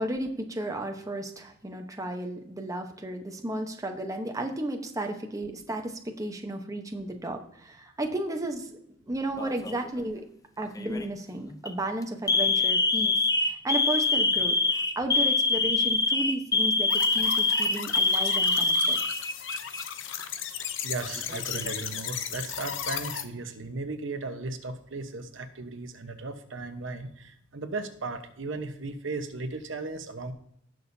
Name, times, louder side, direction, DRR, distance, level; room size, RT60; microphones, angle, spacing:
voice 1, 0.0-8.8 9.0-10.3 10.6-19.0, right 1 dB, 15° right, 4 dB, 1.0 m, -34 dB
Alarm, 9.4-9.9 10.8-11.1 11.5-11.7 12.3-19.8 20.1-20.2 21.2-21.9, left 3 dB, 20° left, 0.5 m, -25 dB
sound 1, 16.9-23.2, left 8 dB, 70° left, 0.8 m, -36 dB
voice 2, 20.8-30.3, right 3 dB, 70° right, 7 dB, 1.1 m, -36 dB
18.0 x 6.4 x 2.7 m, 0.70 s
head